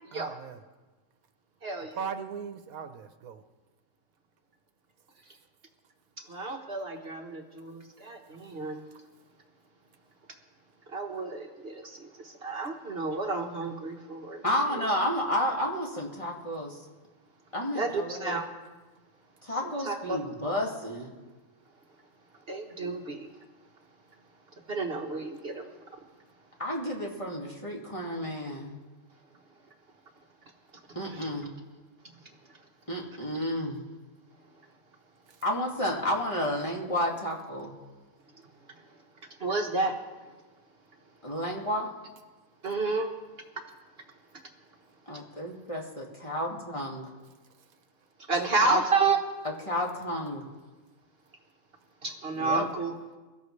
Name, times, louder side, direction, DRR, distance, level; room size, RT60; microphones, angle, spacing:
voice 1, 0.1-0.6 1.9-3.4 35.3-35.4, right 7 dB, 80° right, 9 dB, 1.2 m, -38 dB
voice 2, 1.6-2.0 6.3-8.8 10.9-14.9 17.7-18.4 19.5-20.2 22.5-23.3 24.7-25.7 31.0-31.3 39.4-39.9 42.6-43.1 48.3-49.2 52.0-52.9, right 3 dB, 45° right, 2 dB, 1.3 m, -31 dB
voice 3, 14.4-16.8 17.5-18.4 19.4-21.1 26.6-28.8 31.0-31.5 32.9-33.8 35.4-37.8 41.2-41.9 45.1-47.1 48.6-48.8 49.7-50.4 52.4-52.6, left 1 dB, 20° left, -3 dB, 2.1 m, -31 dB
22.5 x 13.5 x 3.2 m, 1.3 s
omnidirectional pair, 1.5 m